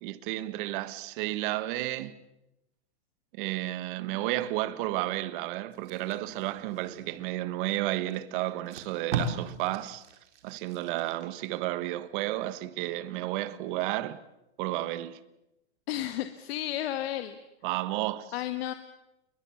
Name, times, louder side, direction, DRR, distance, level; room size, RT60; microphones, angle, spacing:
voice 1, 0.0-2.1 3.4-10.0 10.4-14.2 14.6-15.2 17.6-18.3, right 16 dB, 45° right, 1.5 m, -32 dB
Packing tape duct tape, 5.7-7.4 8.1-8.2 8.5-11.5 11.9-12.1, right 4 dB, 85° right, 4.4 m, -38 dB
voice 2, 15.9-17.4 18.3-18.7, left 13 dB, 60° left, 1.8 m, -32 dB
29.5 x 22.5 x 7.2 m
supercardioid pair, 150°, 34 cm